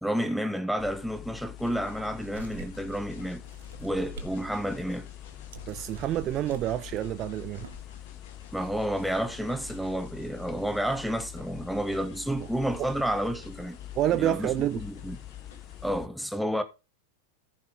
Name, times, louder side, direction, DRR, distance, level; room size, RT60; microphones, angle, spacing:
voice 1, 0.0-3.4 3.8-5.1 8.5-13.8 14.1-15.2 15.8-16.6, equal, ahead, 1.2 m, -30 dB
sound 1, 0.8-16.1, left 12 dB, 25° left, 0.6 m, -44 dB
Train, 1.6-15.9, left 6 dB, 60° left, 2.4 m, -54 dB
sound 2, 2.3-2.9 3.4-4.3 4.7-4.8 5.5-6.7 7.4-7.8, right 6 dB, 60° right, 1.4 m, -45 dB
voice 2, 5.7-7.7 13.9-14.8, right 12 dB, 35° right, 0.5 m, -28 dB
14.5 x 5.5 x 4.0 m
figure-of-eight pair, 90°, 0 cm